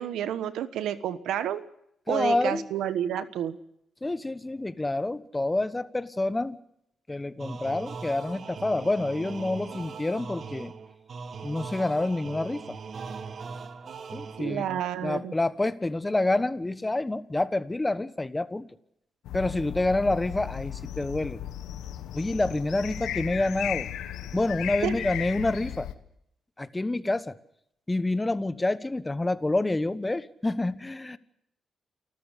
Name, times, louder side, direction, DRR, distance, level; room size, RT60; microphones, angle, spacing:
voice 1, 0.0-1.6 2.1-3.5 14.4-15.3 24.8-24.9, right 10 dB, 85° right, 12 dB, 1.2 m, -30 dB
voice 2, 2.1-2.7 4.0-6.6 7.1-10.7 11.4-12.8 14.1-18.7 19.3-21.4 22.1-23.9 24.3-25.9 26.6-27.4 27.9-31.2, left 2 dB, 20° left, 14 dB, 1.3 m, -28 dB
sound 1, 7.4-14.8, right 5 dB, 60° right, 1.9 m, -40 dB
sound 2, 19.3-25.9, left 10 dB, 90° left, 1.4 m, -36 dB
29.0 x 14.0 x 8.3 m, 0.77 s
cardioid pair, 65°, 0 cm